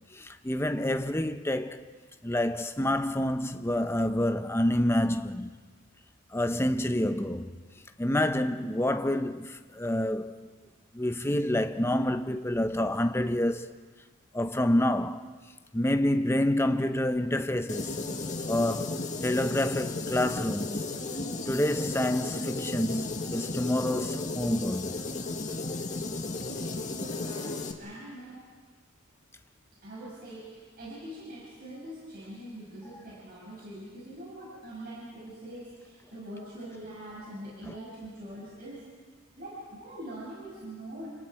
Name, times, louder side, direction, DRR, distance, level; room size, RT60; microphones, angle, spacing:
voice 1, 0.1-1.8 2.2-5.5 6.3-7.6 8.0-10.5 10.9-13.7 14.3-15.3 15.7-18.0 18.5-20.8 21.5-25.0 37.6-37.7, left 1 dB, 10° left, 0.7 m, -28 dB
sound 1, 17.7-27.7, left 3 dB, 35° left, 1.6 m, -34 dB
voice 2, 26.3-28.4 29.8-38.9 39.4-41.1, right 1 dB, 45° right, 6.1 m, -43 dB
30.0 x 27.0 x 4.7 m
head